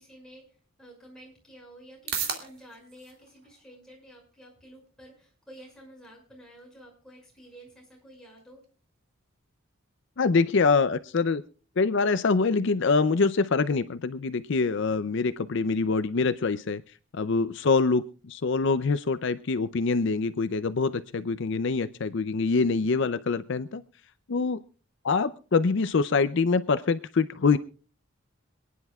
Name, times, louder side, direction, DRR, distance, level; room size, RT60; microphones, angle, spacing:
voice 1, 0.0-8.6, right 1 dB, 5° left, -3 dB, 5.6 m, -51 dB
sound 1, 0.6-17.6, right 7 dB, 50° right, 2.2 m, -45 dB
voice 2, 10.2-11.4 11.8-16.8 17.1-23.8 24.3-24.6 25.0-27.6, left 4 dB, 60° left, 12 dB, 0.5 m, -25 dB
27.0 x 10.0 x 2.3 m, 0.37 s
head